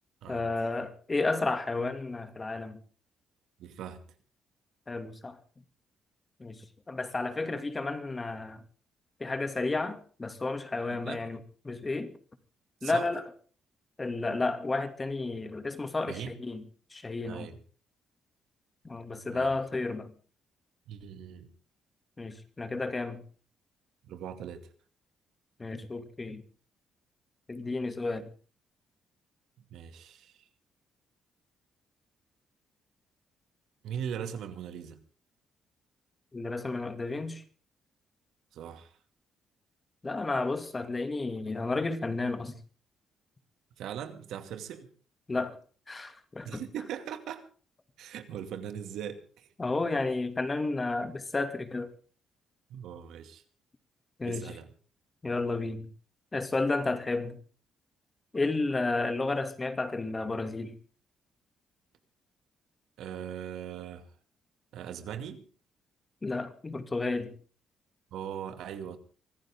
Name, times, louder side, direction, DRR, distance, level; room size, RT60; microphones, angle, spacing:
voice 1, 0.3-2.8 4.9-5.4 6.4-8.6 9.2-11.4 11.6-12.1 12.8-13.2 14.0-16.6 16.9-17.5 18.8-20.1 22.2-23.2 25.6-26.4 27.5-28.3 36.3-37.4 40.0-42.6 45.3-45.6 45.9-46.6 49.6-51.9 54.2-54.5 55.2-55.9 56.3-57.4 58.3-60.8 66.2-67.3, left 3 dB, 25° left, 2.5 m, -32 dB
voice 2, 3.6-4.0 10.9-11.2 12.8-13.1 16.1-16.3 17.3-17.6 19.3-19.6 20.9-21.5 24.0-24.7 29.6-30.5 33.8-35.0 38.5-39.0 43.8-44.9 46.4-47.4 48.0-49.5 52.7-53.4 54.2-54.7 63.0-64.1 64.7-65.4 68.1-69.0, right 9 dB, 80° right, 2.4 m, -40 dB
24.5 x 15.0 x 3.8 m
cardioid pair, 90°, 0 cm